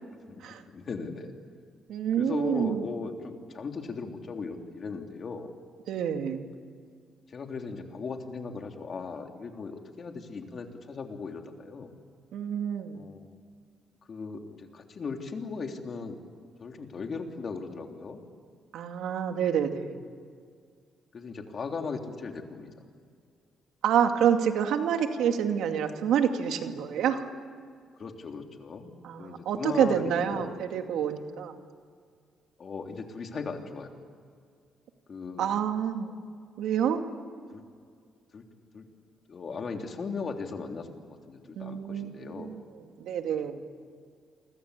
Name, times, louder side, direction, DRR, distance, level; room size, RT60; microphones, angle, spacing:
voice 1, 0.3-1.3 2.2-5.5 7.3-11.9 12.9-13.3 14.0-16.2 16.6-18.2 21.1-22.7 28.0-28.9 29.2-30.6 32.6-33.9 35.1-35.5 37.5-37.6 38.3-38.5 38.7-38.9 39.3-42.6, left 4 dB, 45° left, 4 dB, 3.4 m, -38 dB
voice 2, 1.9-2.8 5.9-6.4 12.3-13.0 18.7-20.0 23.8-27.2 29.0-31.6 35.4-36.1 36.6-37.0 41.6-42.5 43.0-43.6, right 8 dB, 80° right, 5 dB, 2.3 m, -28 dB
28.5 x 24.5 x 8.5 m, 2.1 s
cardioid pair, 90°, 0 cm